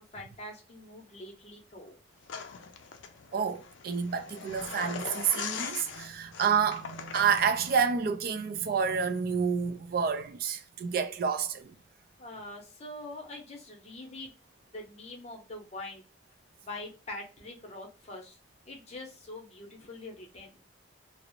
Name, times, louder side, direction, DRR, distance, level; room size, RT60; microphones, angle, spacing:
voice 1, 0.0-2.0 12.2-14.3 14.7-16.0 16.6-18.4 18.7-20.6, left 2 dB, 35° left, 0.7 m, -44 dB
sound 1, 2.3-7.8, left 6 dB, 80° left, 0.4 m, -41 dB
voice 2, 3.3-11.8, right 6 dB, 50° right, 0.3 m, -29 dB
2.5 x 2.0 x 2.9 m
head